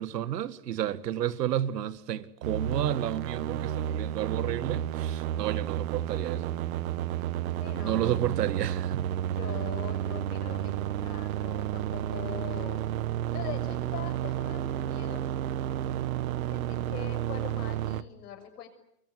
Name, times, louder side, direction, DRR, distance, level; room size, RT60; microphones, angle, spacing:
voice 1, 0.0-6.5 7.8-9.1, right 11 dB, 80° right, 1.9 m, -31 dB
sound 1, 2.4-18.0, right 11 dB, 60° right, 1.3 m, -31 dB
voice 2, 7.6-8.4 9.3-12.9 13.3-15.3 16.5-18.7, left 9 dB, 70° left, 6.6 m, -43 dB
26.5 x 23.0 x 9.4 m
hypercardioid pair, 145°, 47 cm